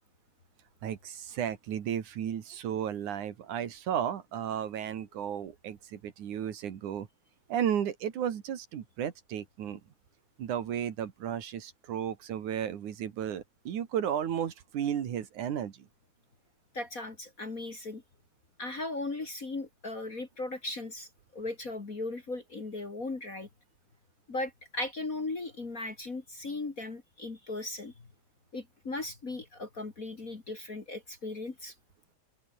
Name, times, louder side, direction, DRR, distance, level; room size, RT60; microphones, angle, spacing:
voice 1, 0.8-7.1 7.5-9.8 10.4-15.9, right 9 dB, 75° right, 3.3 m, -34 dB
voice 2, 16.7-18.0 18.6-23.5 24.3-27.9 28.5-31.7, left 2 dB, 30° left, 2.2 m, -37 dB
open air
omnidirectional pair, 3.6 m